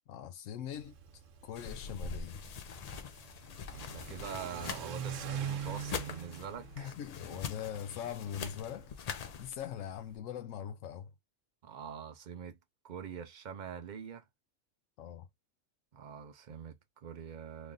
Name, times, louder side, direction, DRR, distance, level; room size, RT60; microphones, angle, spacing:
voice 1, 0.1-1.0 1.4-2.4 6.8-8.9 9.4-11.1 15.0-15.3, left 9 dB, 90° left, 1.0 m, -41 dB
Car / Accelerating revving vroom, 0.7-10.2, right 8 dB, 90° right, 1.1 m, -44 dB
sound 1, 1.6-9.5, left 6 dB, 70° left, 0.3 m, -43 dB
voice 2, 3.7-6.9 7.3-7.4 11.6-12.6 12.8-14.2 15.9-17.7, right 7 dB, 50° right, 0.6 m, -44 dB
3.1 x 2.5 x 3.6 m
omnidirectional pair, 1.3 m